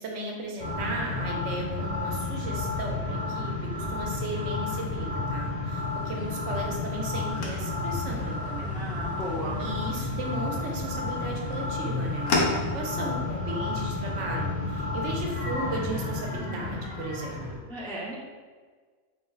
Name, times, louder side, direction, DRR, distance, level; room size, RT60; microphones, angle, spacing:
voice 1, 0.0-8.7 9.5-17.6, right 2 dB, 75° right, 0 dB, 1.0 m, -36 dB
sound 1, 0.6-17.5, left 3 dB, 60° left, 1.3 m, -31 dB
sound 2, 5.8-13.1, left 2 dB, 85° left, 1.1 m, -36 dB
voice 2, 8.6-9.6 17.7-18.2, right 1 dB, 5° left, -5 dB, 0.3 m, -35 dB
4.3 x 2.0 x 3.8 m, 1.5 s
omnidirectional pair, 1.3 m